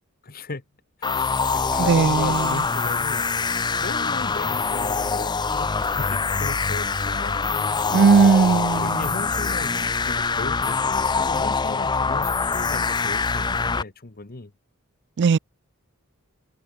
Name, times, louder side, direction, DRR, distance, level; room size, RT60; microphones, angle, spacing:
voice 1, 0.2-0.6 1.0-3.3 3.8-7.5 8.7-14.5, left 3 dB, 45° left, 1.2 m, -36 dB
sound 1, 1.0-13.8, left 4 dB, 20° left, 0.5 m, -24 dB
sound 2, 1.3-7.8, right 12 dB, 70° right, 3.7 m, -51 dB
voice 2, 1.8-2.6 7.9-9.1 15.2-15.4, right 5 dB, 55° right, 0.4 m, -18 dB
head